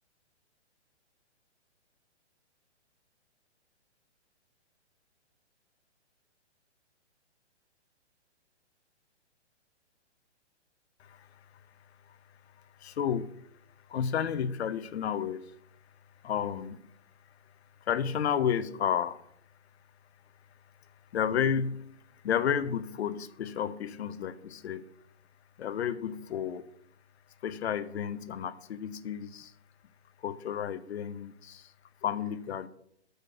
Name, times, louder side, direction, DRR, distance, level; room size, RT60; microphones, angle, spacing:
voice 1, 12.8-13.4 13.9-15.5 16.2-16.8 17.8-19.2 21.1-21.8 22.2-24.9 25.6-26.7 27.4-29.5 30.2-31.7 32.0-32.7, left 8 dB, 65° left, 0.8 m, -31 dB
6.6 x 6.5 x 6.7 m
hypercardioid pair, 140°, 35 cm